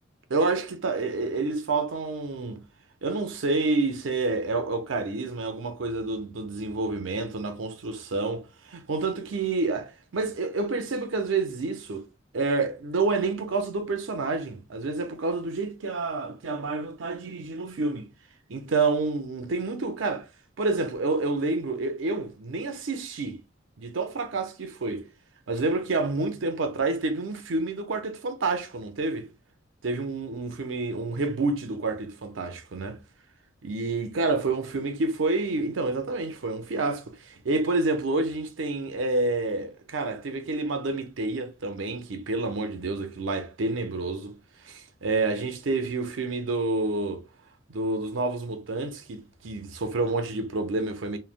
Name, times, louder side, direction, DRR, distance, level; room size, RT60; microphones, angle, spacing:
voice 1, 0.3-2.6 3.0-12.1 12.3-18.1 18.5-20.3 20.6-23.4 23.8-25.1 25.5-29.3 29.8-33.0 33.6-44.4 44.6-47.2 47.7-51.2, right 3 dB, 80° right, 0.6 m, -28 dB
3.2 x 2.0 x 2.4 m
head